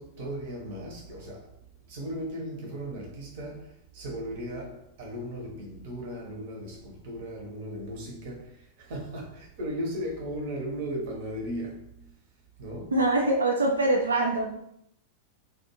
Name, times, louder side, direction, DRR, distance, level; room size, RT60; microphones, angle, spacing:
voice 1, 0.0-1.5 1.9-11.9 12.6-12.9, equal, 50° right, 0.8 m, -36 dB
voice 2, 12.9-14.6, right 2 dB, 75° right, 0.3 m, -24 dB
2.4 x 2.3 x 2.9 m
figure-of-eight pair, 90°, 0 cm